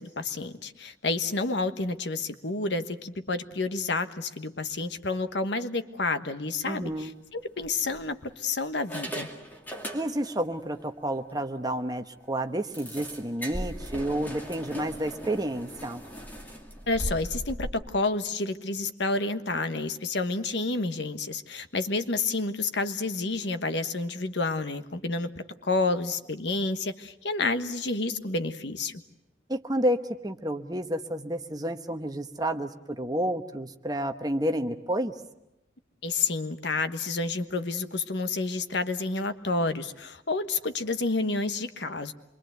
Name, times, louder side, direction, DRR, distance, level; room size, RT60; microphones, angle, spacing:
voice 1, 0.0-9.3 16.9-25.3 25.6-28.9 36.0-42.1, left 3 dB, 70° left, 10 dB, 1.3 m, -29 dB
voice 2, 6.6-7.1 9.9-16.0 29.5-35.1, right 1 dB, 20° right, 7 dB, 1.1 m, -30 dB
sound 1, 6.7-6.9 7.6-8.3 8.8-10.4 10.7-10.9 11.3-11.4 11.7-11.8 12.7-17.7, equal, 10° left, 2.4 m, -38 dB
26.5 x 23.0 x 8.0 m, 0.91 s
head